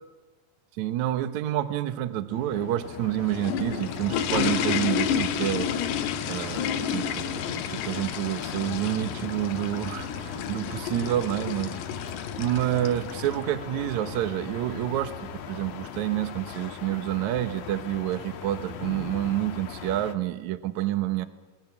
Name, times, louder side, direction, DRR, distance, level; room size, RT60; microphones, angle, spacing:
voice 1, 0.7-5.7 6.2-11.8 12.1-21.3, right 13 dB, 70° right, 12 dB, 1.8 m, -28 dB
sound 1, 2.3-20.1, left 7 dB, 65° left, 2.8 m, -38 dB
sound 2, 3.0-13.4, left 8 dB, 85° left, 3.3 m, -31 dB
28.5 x 22.0 x 7.2 m, 1.2 s
omnidirectional pair, 4.8 m